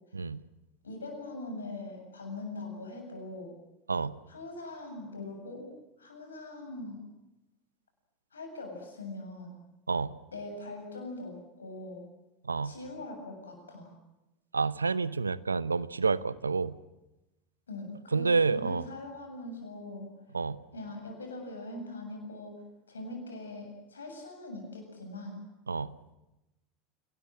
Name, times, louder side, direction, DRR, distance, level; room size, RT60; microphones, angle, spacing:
voice 1, 0.8-3.5 4.3-5.7 6.0-7.0 8.3-9.6 10.3-12.0 12.6-14.0 17.7-20.1 20.7-22.5 22.9-25.4, left 2 dB, 85° left, 4 dB, 7.5 m, -42 dB
voice 2, 14.5-16.7 18.1-18.8 20.3-20.6 25.7-25.9, right 4 dB, 90° right, 18 dB, 0.8 m, -29 dB
28.5 x 19.5 x 7.7 m, 0.97 s
hypercardioid pair, 80°, 0 cm